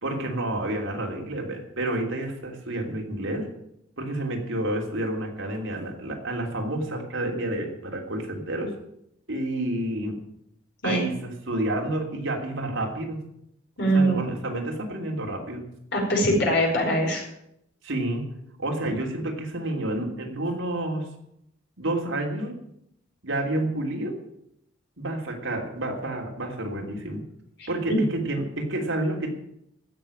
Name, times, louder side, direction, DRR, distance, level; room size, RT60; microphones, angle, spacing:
voice 1, 0.0-3.5 4.0-8.7 9.3-10.2 10.8-13.2 13.8-15.6 17.8-18.3 18.6-21.0 21.8-22.5 23.2-24.2 25.0-27.2 27.7-29.3, right 1 dB, 70° right, 1 dB, 3.2 m, -29 dB
voice 2, 13.8-14.2 15.9-17.2 27.6-27.7, right 1 dB, 60° left, -1 dB, 5.0 m, -22 dB
16.0 x 6.7 x 8.8 m, 0.76 s
head